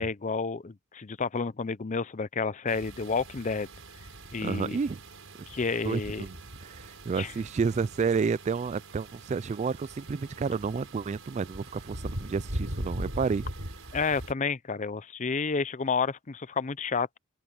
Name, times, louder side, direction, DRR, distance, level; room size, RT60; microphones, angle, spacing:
voice 1, 0.0-3.7 4.3-4.8 5.5-6.3 7.2-7.3 13.9-17.2, left 4 dB, 35° left, 0.6 m, -30 dB
sound 1, 2.7-14.3, right 1 dB, 75° right, 5.4 m, -41 dB
voice 2, 4.4-5.0 5.8-6.4 6.6-13.4, right 5 dB, 35° right, 0.3 m, -30 dB
open air
head